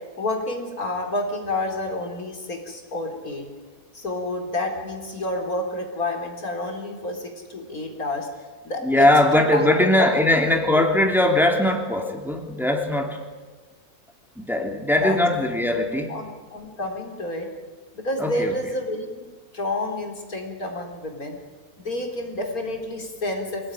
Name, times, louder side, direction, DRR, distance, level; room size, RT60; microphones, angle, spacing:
voice 1, 0.2-3.5 3.9-8.3 8.6-9.1 9.3-9.7 9.9-10.1 10.5-10.9 15.0-15.2 16.1-17.5 17.9-21.4 21.8-23.7, left 2 dB, 80° left, 3 dB, 4.3 m, -29 dB
voice 2, 8.8-13.2 14.4-16.1 18.2-18.5, left 1 dB, ahead, 2 dB, 2.9 m, -20 dB
25.5 x 18.0 x 10.0 m, 1.4 s
omnidirectional pair, 1.5 m